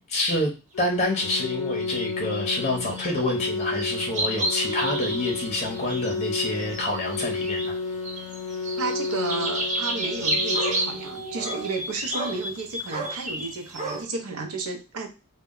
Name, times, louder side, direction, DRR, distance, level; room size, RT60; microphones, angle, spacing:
voice 1, 0.1-7.7, left 1 dB, 30° left, 1 dB, 0.6 m, -27 dB
Organ, 0.7-11.7, left 4 dB, 80° left, 0.4 m, -32 dB
sound 1, 1.8-3.3 3.6-7.8 8.0-14.0, right 1 dB, 35° right, 0.7 m, -31 dB
voice 2, 8.8-15.1, right 4 dB, 70° right, 4 dB, 0.6 m, -32 dB
2.1 x 2.1 x 3.6 m, 0.29 s
head